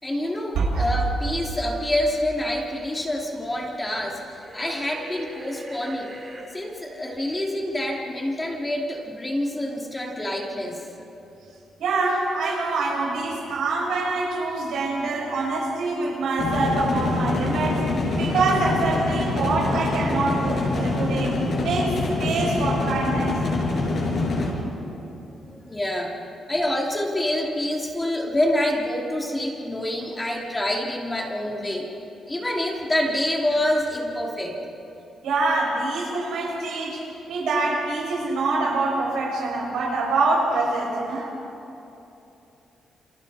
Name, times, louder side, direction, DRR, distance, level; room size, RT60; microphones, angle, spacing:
voice 1, 0.0-6.1 6.5-10.8 25.7-26.1 26.5-31.9 32.3-34.6, left 1 dB, 15° left, -1 dB, 2.8 m, -26 dB
voice 2, 0.6-0.9 11.8-17.8 18.1-21.4 21.6-23.4 35.2-41.3, right 3 dB, 85° right, -3 dB, 7.2 m, -25 dB
sound 1, 4.4-6.5, right 2 dB, 25° right, 6.0 m, -41 dB
sound 2, 16.4-24.5, left 2 dB, 50° left, 6.5 m, -25 dB
29.0 x 27.5 x 4.3 m, 3.0 s
cardioid pair, 140°, 0 cm